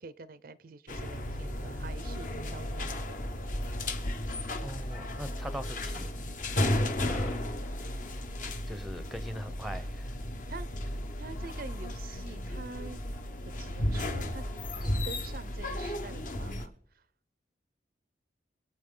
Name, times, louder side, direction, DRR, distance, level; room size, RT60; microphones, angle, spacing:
voice 1, 0.0-3.3 10.5-10.7 11.2-13.0 13.5-14.4 14.8-17.0, right 3 dB, 50° right, 0.5 m, -46 dB
sound 1, 0.9-16.7, left 1 dB, 45° left, 0.9 m, -34 dB
voice 2, 4.6-7.4 8.7-10.2, equal, ahead, 0.7 m, -41 dB
25.0 x 8.4 x 3.8 m
head